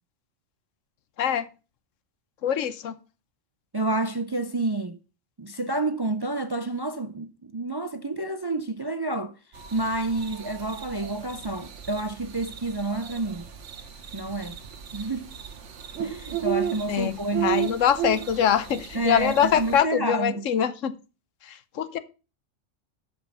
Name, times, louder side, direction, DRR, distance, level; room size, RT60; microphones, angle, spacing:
voice 1, 2.4-3.0 16.9-20.9 21.8-22.0, left 9 dB, 90° left, 1.2 m, -24 dB
voice 2, 3.7-5.0 5.4-9.3 9.7-13.5 14.1-14.6 14.9-15.3 16.0-17.6 18.9-20.4, right 2 dB, 35° right, 0.4 m, -29 dB
sound 1, 9.5-19.8, right 10 dB, 70° right, 1.4 m, -34 dB
12.0 x 5.4 x 5.4 m
omnidirectional pair, 1.3 m